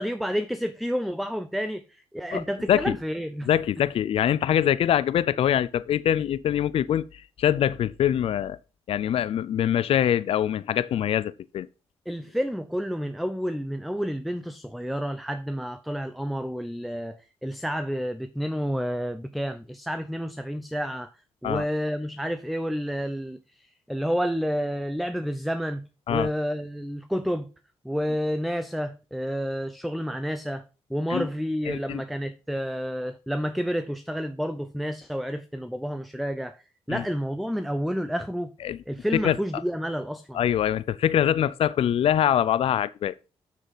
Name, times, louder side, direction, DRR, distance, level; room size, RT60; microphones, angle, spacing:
voice 1, 0.0-3.5 12.1-21.1 21.4-25.8 26.1-27.5 27.8-30.6 30.9-38.5 38.9-40.4, equal, ahead, 0.7 m, -30 dB
voice 2, 3.5-8.6 8.9-11.7 21.4-21.6 26.1-26.3 31.1-31.3 31.7-32.0 36.9-37.0 38.6-38.8 39.1-39.4 40.3-43.1, left 10 dB, 65° left, 0.4 m, -24 dB
7.0 x 6.4 x 4.0 m
cardioid pair, 75°, 11 cm